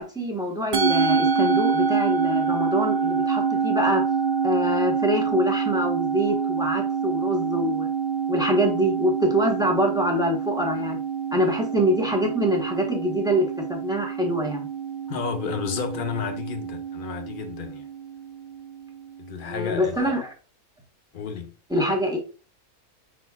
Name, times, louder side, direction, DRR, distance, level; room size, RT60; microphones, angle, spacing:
voice 1, 0.0-4.0 4.4-7.9 8.3-11.0 11.3-14.7 19.4-20.3 21.7-22.2, equal, 5° right, 0.8 m, -25 dB
Musical instrument, 0.7-19.2, right 6 dB, 75° right, 0.4 m, -26 dB
voice 2, 15.1-17.9 19.2-20.1 21.1-21.5, left 6 dB, 55° left, 0.6 m, -31 dB
5.4 x 4.1 x 2.3 m
omnidirectional pair, 1.5 m